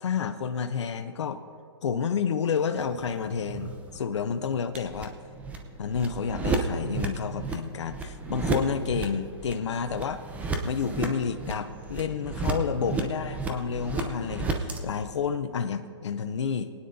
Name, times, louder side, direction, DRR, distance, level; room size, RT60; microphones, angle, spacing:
voice 1, 0.0-1.4 1.8-5.1 5.8-10.2 10.6-16.7, left 6 dB, 80° left, 8 dB, 0.6 m, -30 dB
sound 1, 2.8-14.8, right 3 dB, 10° right, 0.8 m, -33 dB
22.0 x 9.6 x 2.7 m, 2.3 s
hypercardioid pair, 150°, 15 cm